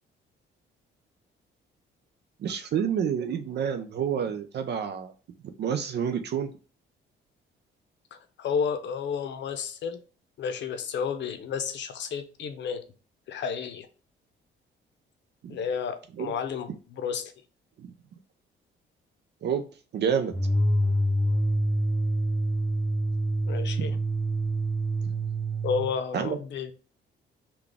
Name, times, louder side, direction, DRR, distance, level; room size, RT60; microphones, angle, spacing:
voice 1, 2.4-5.1 5.6-6.5 15.4-15.6 16.2-16.3 17.8-17.9 19.4-19.6 19.9-20.3 23.8-23.9 26.1-26.4, right 8 dB, 60° right, 7 dB, 0.5 m, -28 dB
voice 2, 8.1-10.0 10.4-12.8 13.3-13.9 15.5-17.3 23.5-24.0 25.6-26.7, left 6 dB, 65° left, 8 dB, 0.6 m, -31 dB
sound 1, 20.3-25.9, right 1 dB, 5° left, 1.0 m, -26 dB
3.8 x 2.3 x 3.4 m, 0.37 s
cardioid pair, 90°, 20 cm